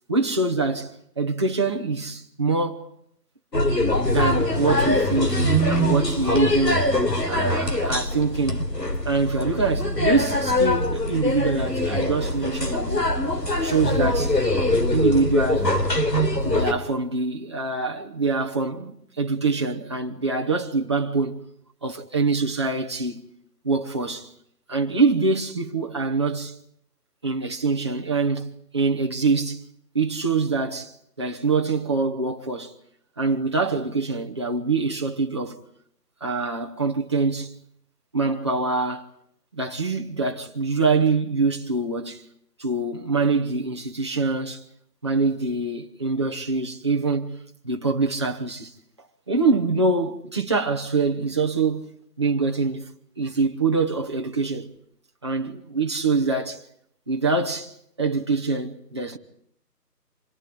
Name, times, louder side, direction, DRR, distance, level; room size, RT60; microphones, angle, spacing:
voice 1, 0.1-2.9 4.0-5.4 5.7-6.9 7.3-8.7 9.0-13.1 13.6-14.4 14.9-15.8 16.4-21.5 21.8-23.2 23.6-24.3 24.7-26.5 27.2-28.5 28.7-29.6 29.9-32.8 33.2-35.6 36.2-37.5 38.1-39.1 39.5-42.2 42.6-44.6 45.0-47.4 47.6-48.7 49.3-51.9 52.2-52.9 53.2-54.7 55.2-56.6 57.1-57.7 58.0-59.2, right 4 dB, 15° right, 1.1 m, -24 dB
sound 1, 3.5-16.7, left 1 dB, 85° left, 4.0 m, -23 dB
26.5 x 18.0 x 9.7 m
figure-of-eight pair, 165°, 48 cm